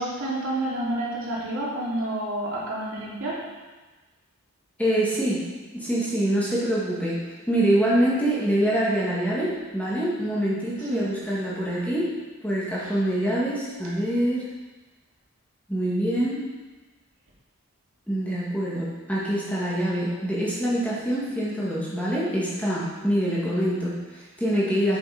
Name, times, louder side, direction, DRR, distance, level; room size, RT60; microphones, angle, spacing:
voice 1, 0.0-3.4 10.9-11.0 12.8-12.9, right 1 dB, 65° right, -6 dB, 2.9 m, -29 dB
voice 2, 4.8-5.4 5.7-7.2 7.5-12.1 12.4-14.5 15.7-16.4 18.1-25.0, right 1 dB, 5° left, -7 dB, 1.9 m, -25 dB
7.9 x 7.0 x 5.0 m, 1.2 s
head